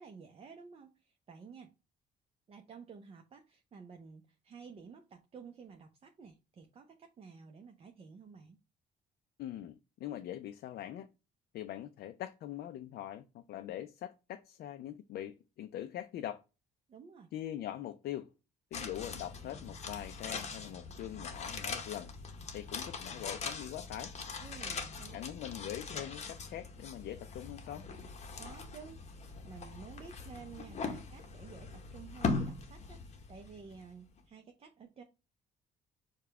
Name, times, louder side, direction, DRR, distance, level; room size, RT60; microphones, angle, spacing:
voice 1, 0.0-1.7 2.5-8.6 16.9-17.3 24.4-25.2 28.4-35.0, right 6 dB, 35° right, 0.6 m, -52 dB
voice 2, 9.4-11.1 11.5-16.4 17.3-18.3 18.7-22.1 22.5-24.1 25.1-27.9, left 12 dB, 65° left, 0.4 m, -42 dB
sound 1, 18.7-33.9 34.2-34.3, left 4 dB, 40° left, 0.8 m, -41 dB
4.8 x 2.2 x 4.6 m
cardioid pair, 120°, 17 cm